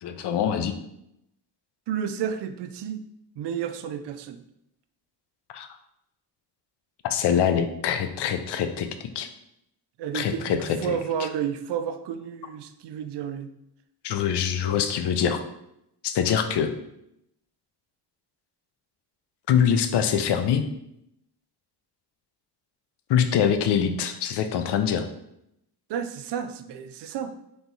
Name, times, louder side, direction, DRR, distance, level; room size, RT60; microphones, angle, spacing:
voice 1, 0.0-0.7 5.5-5.7 7.0-9.3 10.1-10.9 14.0-15.4 16.0-16.7 19.5-20.6 23.1-25.1, left 8 dB, 75° left, 8 dB, 0.5 m, -24 dB
voice 2, 1.9-3.1 3.4-4.4 10.0-13.5 25.9-27.3, right 8 dB, 75° right, 9 dB, 0.5 m, -31 dB
3.5 x 3.0 x 4.0 m, 0.81 s
cardioid pair, 110°, 41 cm